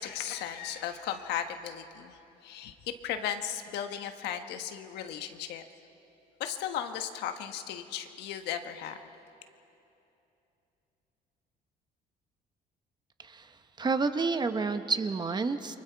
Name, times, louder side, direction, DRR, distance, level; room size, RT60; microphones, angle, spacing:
voice 1, 0.0-5.6 6.4-9.0, left 9 dB, 80° left, 7 dB, 1.3 m, -36 dB
voice 2, 13.2-15.8, right 4 dB, 25° right, 9 dB, 1.0 m, -30 dB
29.5 x 23.5 x 4.7 m, 2.9 s
cardioid pair, 110°, 17 cm